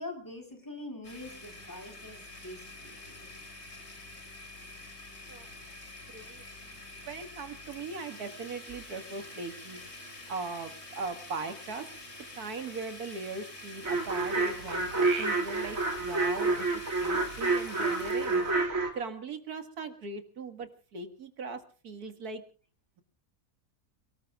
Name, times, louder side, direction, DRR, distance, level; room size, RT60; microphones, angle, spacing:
voice 1, 0.0-3.5, left 2 dB, 10° left, 5 dB, 4.0 m, -44 dB
Domestic sounds home sounds, 1.0-18.7, left 2 dB, 45° left, 3.3 m, -47 dB
voice 2, 6.1-9.8 10.3-11.9 12.3-16.7 17.0-18.4 18.9-22.4, right 4 dB, 80° right, 7 dB, 2.4 m, -39 dB
sound 1, 13.8-18.9, right 3 dB, 60° right, 2.9 m, -29 dB
29.5 x 19.0 x 2.4 m, 0.38 s
omnidirectional pair, 1.6 m